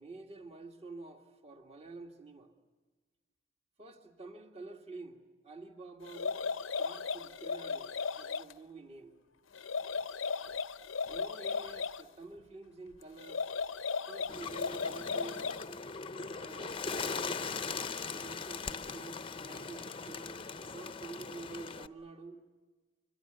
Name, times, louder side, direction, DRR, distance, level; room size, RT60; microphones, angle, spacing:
voice 1, 0.0-2.5 3.8-6.5 6.8-9.2 11.1-13.5 14.1-15.5 16.3-17.4 18.1-22.4, right 3 dB, 30° right, 5 dB, 2.0 m, -49 dB
sound 1, 6.1-8.5 9.5-12.0 13.2-15.7, left 5 dB, 80° left, 0.7 m, -36 dB
Bird, 14.3-21.9, left 5 dB, 25° left, 0.7 m, -40 dB
24.5 x 24.0 x 8.1 m, 1.3 s
head